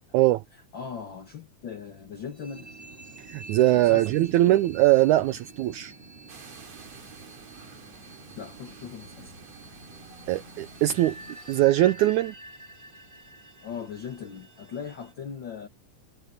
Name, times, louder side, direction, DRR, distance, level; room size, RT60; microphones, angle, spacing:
voice 1, 0.7-2.7 3.7-4.6 8.4-9.4 13.6-15.7, left 7 dB, 60° left, 1.3 m, -39 dB
sound 1, 2.3-15.1, right 1 dB, 10° right, 3.0 m, -49 dB
sound 2, 2.5-11.4, right 3 dB, 45° right, 4.2 m, -50 dB
voice 2, 3.3-5.9 10.3-11.2 11.5-12.3, right 15 dB, 85° right, 1.8 m, -21 dB
sound 3, 6.3-11.6, right 5 dB, 65° right, 6.1 m, -51 dB
omnidirectional pair, 4.0 m